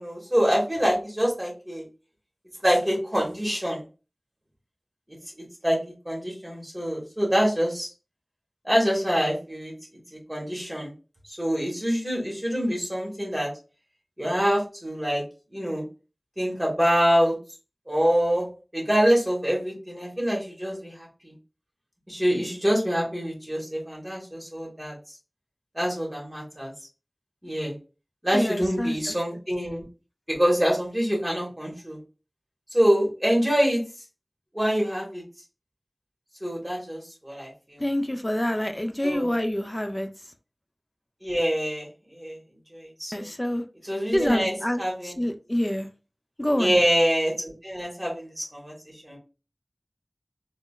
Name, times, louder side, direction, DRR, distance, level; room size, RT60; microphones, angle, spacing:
voice 1, 0.0-1.8 2.6-3.8 5.6-7.9 8.6-9.7 10.1-10.9 11.4-13.5 14.2-15.2 15.5-15.8 16.4-17.4 17.9-18.5 18.7-21.3 22.1-24.9 25.7-26.7 27.4-27.7 28.2-29.8 30.3-32.0 32.7-33.8 34.5-35.2 36.4-37.8 39.0-39.3 41.2-42.4 42.7-43.3 43.8-45.2 46.6-48.7 49.0-49.2, equal, 15° right, 1.4 m, -25 dB
voice 2, 28.3-29.0 37.8-40.1 43.1-43.6 44.1-45.9 46.4-46.8, left 1 dB, 20° left, 0.4 m, -27 dB
3.7 x 2.1 x 2.3 m
wide cardioid pair, 45°, 0 cm